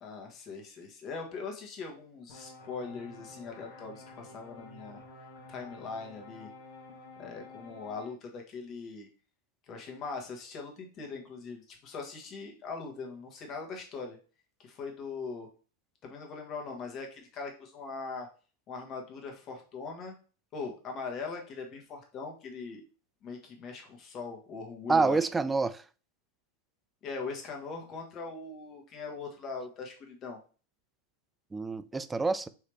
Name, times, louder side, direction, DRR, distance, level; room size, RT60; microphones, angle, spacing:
voice 1, 0.0-5.0 5.5-6.5 7.2-9.1 9.7-14.2 14.6-15.5 16.0-18.3 18.7-20.1 20.5-22.8 23.2-25.2 27.0-30.4, left 4 dB, 35° left, 1.4 m, -41 dB
sound 1, 2.3-8.1, left 2 dB, 60° left, 1.3 m, -50 dB
voice 2, 24.9-25.8 31.5-32.5, right 4 dB, 10° right, 0.3 m, -27 dB
4.6 x 3.2 x 3.2 m
hypercardioid pair, 95°, 0 cm